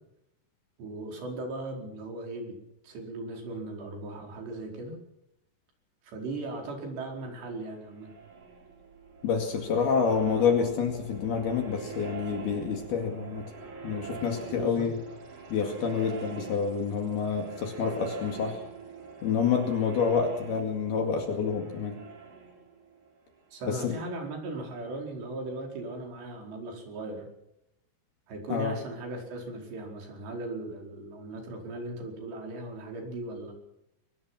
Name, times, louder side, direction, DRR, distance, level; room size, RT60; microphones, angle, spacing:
voice 1, 0.8-2.6 2.8-5.0 6.0-8.1 14.4-14.9 23.5-27.3 28.3-33.5, right 2 dB, 85° right, 2 dB, 7.0 m, -38 dB
sound 1, 7.6-24.2, right 5 dB, 45° right, 5.0 m, -44 dB
voice 2, 9.2-13.5 13.8-15.0 15.5-18.6 19.2-22.0 23.7-24.0 28.5-28.8, left 6 dB, 70° left, 4 dB, 4.2 m, -28 dB
24.0 x 20.0 x 6.0 m, 0.81 s
omnidirectional pair, 4.8 m